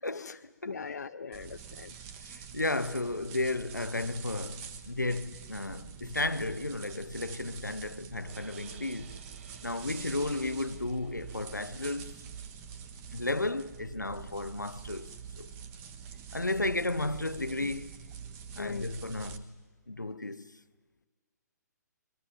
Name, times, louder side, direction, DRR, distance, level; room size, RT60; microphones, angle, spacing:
voice 1, 0.0-0.8 2.2-9.2 9.6-12.2 13.1-15.1 15.4-15.5 16.3-17.9 18.6-19.6 19.9-20.6, left 2 dB, 85° left, 1.0 m, -33 dB
voice 2, 0.7-2.0 17.6-17.7 18.6-18.9, left 5 dB, 65° left, 0.7 m, -40 dB
sound 1, 1.3-19.4, right 7 dB, 25° right, 1.6 m, -46 dB
sound 2, 8.3-14.4, right 8 dB, 40° right, 1.3 m, -58 dB
22.5 x 22.0 x 9.2 m
figure-of-eight pair, 130°, 10 cm